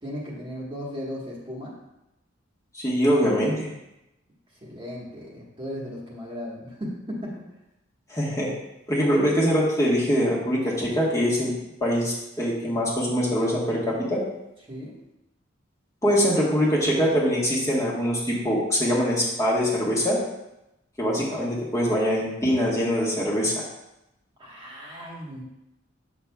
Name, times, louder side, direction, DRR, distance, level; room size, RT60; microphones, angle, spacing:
voice 1, 0.0-1.8 4.6-7.4 14.7-15.0 24.4-25.4, equal, 25° right, -4 dB, 1.3 m, -36 dB
voice 2, 2.7-3.7 8.1-8.5 8.9-11.5 11.8-14.2 16.0-20.2 21.0-23.6, equal, 15° left, -5 dB, 1.2 m, -23 dB
7.6 x 6.0 x 2.3 m, 0.90 s
head